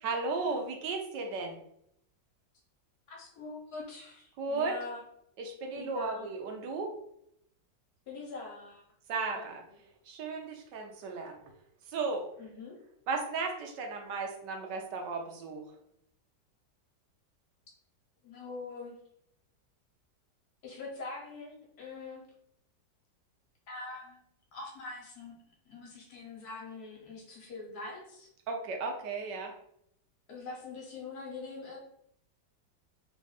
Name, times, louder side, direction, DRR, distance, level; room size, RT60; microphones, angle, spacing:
voice 1, 0.0-1.6 4.4-4.7 5.4-7.0 9.1-9.6 10.1-11.4 11.9-12.3 13.1-15.6 28.5-29.5, right 4 dB, 75° right, 3 dB, 1.3 m, -35 dB
voice 2, 3.1-5.0 5.8-6.3 8.1-8.8 9.3-9.8 12.4-12.8 18.2-18.9 20.6-22.2 23.7-24.2 24.5-25.3 25.7-28.3 30.3-31.8, left 3 dB, 65° left, -1 dB, 1.3 m, -43 dB
3.4 x 2.4 x 4.0 m, 0.72 s
omnidirectional pair, 1.9 m